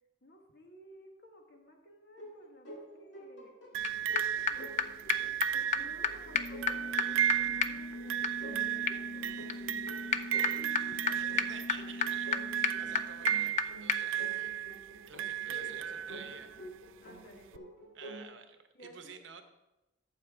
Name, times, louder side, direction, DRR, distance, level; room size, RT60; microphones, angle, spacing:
voice 1, 0.2-5.3 5.7-10.7 11.0-11.5 12.6-12.7 15.5-16.6 17.0-17.5 18.7-19.2, equal, 55° left, 2 dB, 1.6 m, -56 dB
sound 1, 2.2-18.2, right 1 dB, 70° left, 2.2 m, -50 dB
sound 2, 3.7-16.6 17.5-17.6, right 10 dB, 90° right, 0.3 m, -35 dB
sound 3, 3.8-3.9 4.2-4.3 4.5-4.6 4.8-4.9 5.1-5.2 5.4-5.5 5.7-5.8 6.0-6.1 6.3-13.6 13.9-14.0, left 6 dB, 35° left, 0.3 m, -34 dB
voice 2, 11.1-16.5 17.9-19.4, right 6 dB, 70° right, 8 dB, 0.9 m, -51 dB
12.0 x 7.7 x 3.6 m, 0.98 s
head